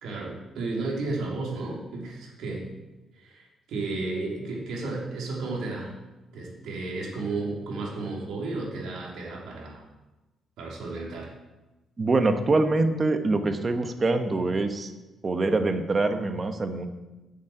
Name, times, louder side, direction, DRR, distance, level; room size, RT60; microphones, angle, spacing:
voice 1, 0.0-2.7 3.1-5.9 6.3-9.8 10.6-11.3, right 3 dB, 80° right, -2 dB, 3.4 m, -33 dB
voice 2, 12.0-14.9 15.2-16.9, right 3 dB, 30° right, 8 dB, 1.2 m, -24 dB
9.4 x 7.3 x 8.0 m, 1.1 s
cardioid pair, 90°, 0 cm